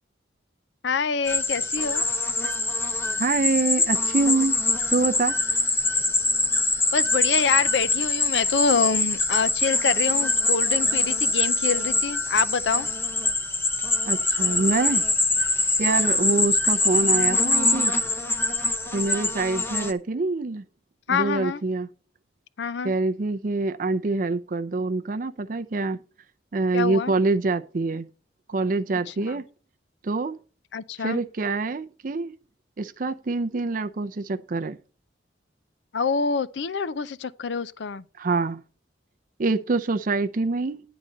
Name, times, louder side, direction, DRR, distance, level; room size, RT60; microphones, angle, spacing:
voice 1, 0.8-2.1 6.9-12.9 21.1-21.6 22.6-22.9 26.7-27.1 29.1-29.4 30.7-31.2 35.9-38.0, left 5 dB, 70° left, 0.5 m, -26 dB
sound 1, 1.3-19.9, left 2 dB, 10° left, 0.6 m, -24 dB
voice 2, 3.2-4.6 4.9-5.4 14.1-15.0 15.8-17.9 18.9-20.6 21.1-21.9 22.8-26.0 26.5-28.1 28.5-29.5 30.0-30.4 31.0-32.3 32.8-34.8 38.2-38.6 39.4-40.8, right 3 dB, 45° right, 0.5 m, -25 dB
10.5 x 3.9 x 7.4 m
head